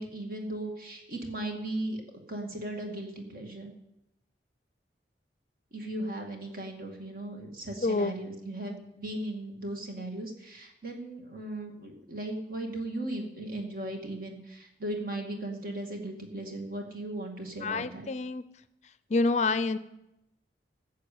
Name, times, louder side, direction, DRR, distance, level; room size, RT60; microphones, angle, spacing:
voice 1, 0.0-2.0 2.3-3.7 5.7-18.1, right 1 dB, 55° right, 3 dB, 2.3 m, -37 dB
voice 2, 7.8-8.1 17.6-18.4 19.1-19.8, left 3 dB, 40° left, 14 dB, 0.5 m, -27 dB
14.0 x 6.8 x 8.6 m, 0.88 s
head